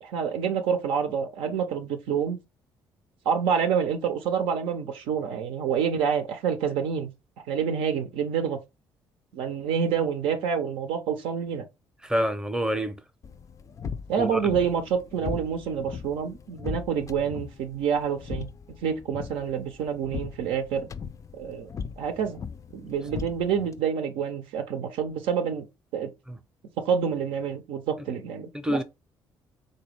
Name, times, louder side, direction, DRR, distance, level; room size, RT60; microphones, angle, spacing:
voice 1, 0.0-2.4 3.3-7.1 7.5-8.6 9.3-11.7 14.1-18.5 18.8-20.9 21.3-21.7 22.0-22.4 22.7-25.7 25.9-26.1 26.8-28.8, right 7 dB, 80° right, 0.5 m, -27 dB
voice 2, 12.0-13.0 14.2-14.4 26.3-26.4 28.5-28.8, equal, 10° right, 0.6 m, -27 dB
sound 1, 13.2-23.8, left 6 dB, 35° left, 0.3 m, -39 dB
3.8 x 2.2 x 3.2 m
supercardioid pair, 75°, 9 cm